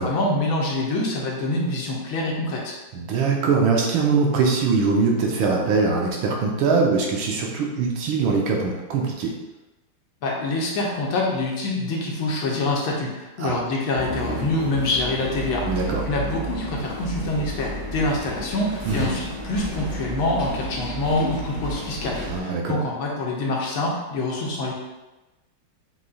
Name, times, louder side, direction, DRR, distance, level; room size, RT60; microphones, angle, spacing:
voice 1, 0.0-2.7 10.2-24.7, left 2 dB, 75° left, -2 dB, 1.6 m, -26 dB
voice 2, 2.9-9.3 13.4-13.6 15.6-16.0 18.8-19.1 22.2-22.8, right 4 dB, 75° right, 0 dB, 1.5 m, -22 dB
sound 1, 14.0-22.4, right 1 dB, 20° right, 0.8 m, -32 dB
6.4 x 3.1 x 2.3 m, 1.1 s
omnidirectional pair, 2.3 m